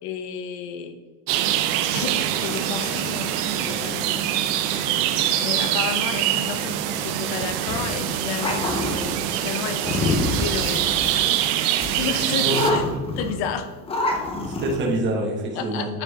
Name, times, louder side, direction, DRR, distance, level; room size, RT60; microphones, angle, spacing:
voice 1, 0.0-0.9 1.9-4.3 5.4-11.5 12.0-12.8 13.2-13.7 15.5-16.0, left 6 dB, 60° left, 9 dB, 0.9 m, -32 dB
sound 1, 1.3-12.7, right 11 dB, 65° right, 0.7 m, -24 dB
sound 2, 7.7-9.1 9.8-11.3 11.8-12.0 12.5-13.5 13.9-14.8, left 2 dB, 15° left, 0.5 m, -26 dB
voice 2, 12.4-13.0 14.4-15.9, right 1 dB, 25° right, -1 dB, 1.1 m, -26 dB
9.8 x 4.6 x 3.9 m, 1.3 s
cardioid pair, 160°, 43 cm